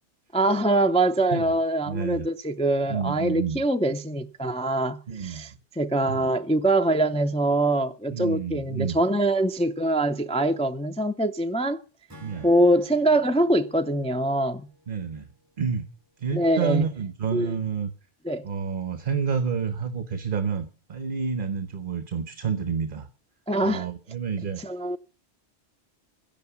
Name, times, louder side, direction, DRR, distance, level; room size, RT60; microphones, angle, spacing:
voice 1, 0.3-11.8 12.4-14.7 16.3-16.9 17.3-17.5 18.2-18.5 23.5-23.9 24.6-25.0, right 1 dB, 10° left, 0.3 m, -24 dB
voice 2, 1.9-2.3 2.9-3.6 5.1-5.6 6.0-6.3 8.1-9.0 12.2-12.5 14.9-15.3 15.6-15.9 16.2-17.9 18.4-23.1 23.6-24.6, right 6 dB, 50° right, 1.2 m, -29 dB
Acoustic guitar / Strum, 12.1-15.5, left 2 dB, 15° right, 2.2 m, -51 dB
14.0 x 10.5 x 6.9 m
omnidirectional pair, 1.2 m